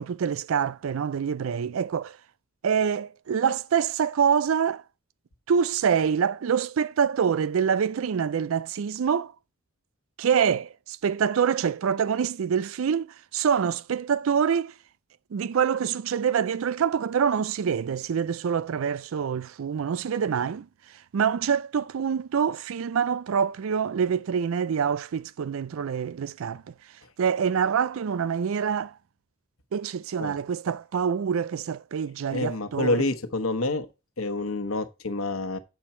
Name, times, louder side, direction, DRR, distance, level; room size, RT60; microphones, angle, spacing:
voice 1, 0.0-2.2 2.6-4.8 5.5-9.3 10.2-14.7 15.3-20.7 21.1-26.7 27.2-28.9 29.7-33.1, right 7 dB, 75° right, 0.4 m, -26 dB
voice 2, 32.3-33.9 34.2-35.6, left 2 dB, 85° left, 1.1 m, -27 dB
7.1 x 6.9 x 4.3 m
head